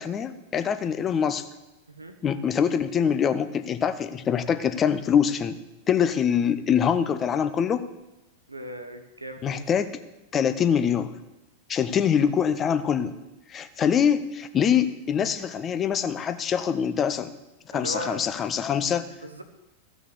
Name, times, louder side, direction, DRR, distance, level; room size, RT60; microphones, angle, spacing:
voice 1, 0.0-1.4 2.2-5.6 5.9-7.9 9.4-10.0 10.3-11.1 11.7-13.1 13.5-17.3 17.7-19.1, left 8 dB, 25° left, 11 dB, 0.8 m, -24 dB
voice 2, 8.5-9.6 13.8-14.0 17.7-18.2 19.2-19.4, right 1 dB, 80° right, 7 dB, 1.2 m, -37 dB
15.0 x 6.3 x 6.9 m, 0.99 s
figure-of-eight pair, 90°, 0 cm